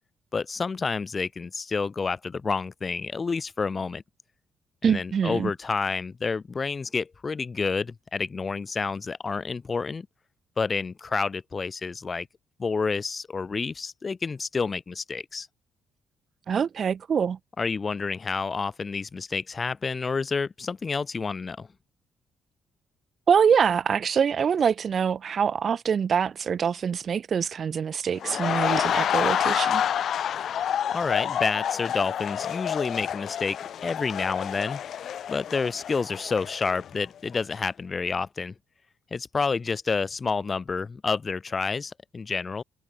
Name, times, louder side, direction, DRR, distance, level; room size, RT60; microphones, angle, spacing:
voice 1, 0.3-4.0 4.8-10.1 10.6-12.3 12.6-15.5 17.6-21.7 30.9-33.6 33.8-34.8 35.3-38.5 39.1-42.6, left 4 dB, 35° left, 2.7 m, -29 dB
voice 2, 4.8-5.5 16.5-17.4 23.3-29.8, right 7 dB, 50° right, 0.7 m, -24 dB
sound 1, 28.2-37.0 37.3-37.6, left 9 dB, 65° left, 0.4 m, -28 dB
cardioid pair, 90°, 0 cm